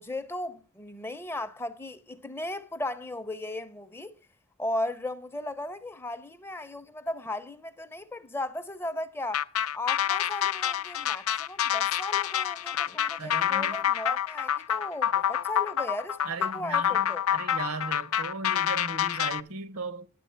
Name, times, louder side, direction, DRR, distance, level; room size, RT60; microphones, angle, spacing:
voice 1, 0.0-4.1 4.6-9.4 9.7-17.2, left 1 dB, 10° left, 0.5 m, -36 dB
sound 1, 9.3-19.4, left 10 dB, 80° left, 0.5 m, -27 dB
voice 2, 13.2-13.9 16.2-20.1, right 4 dB, 90° right, 1.0 m, -37 dB
11.0 x 7.7 x 5.5 m
head